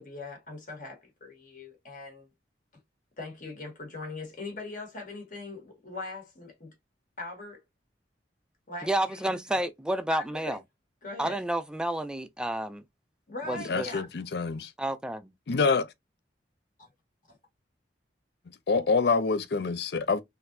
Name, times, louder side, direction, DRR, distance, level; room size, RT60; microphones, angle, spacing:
voice 1, 0.0-2.3 3.2-6.7 7.2-7.6 8.7-9.3 10.1-10.6 11.0-11.4 13.3-14.1 16.8-16.9 17.3-17.4, left 3 dB, 50° left, 1.8 m, -40 dB
voice 2, 8.8-10.6 11.2-12.8 13.5-13.9 14.8-15.3, right 1 dB, 5° right, 0.4 m, -30 dB
voice 3, 13.7-14.7 15.5-15.9 18.7-20.2, left 4 dB, 65° left, 0.5 m, -26 dB
3.9 x 2.6 x 2.6 m
head